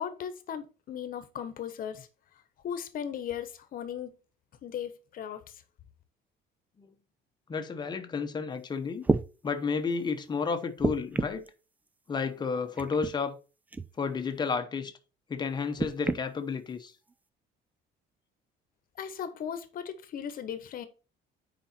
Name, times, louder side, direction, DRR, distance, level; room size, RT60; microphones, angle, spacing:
voice 1, 0.0-2.1 2.6-4.1 4.6-5.4 19.0-20.9, left 8 dB, 45° left, 1.2 m, -37 dB
voice 2, 7.5-9.1 9.4-11.5 12.1-13.4 14.0-14.9 15.3-16.9, left 5 dB, 20° left, 1.0 m, -31 dB
sound 1, 8.5-8.6 9.0-9.3 10.8-11.5 12.8-13.1 13.7-13.9 15.8-16.2 17.1-17.2, right 3 dB, 10° right, 0.3 m, -29 dB
8.8 x 5.1 x 4.4 m
cardioid pair, 170°, 20 cm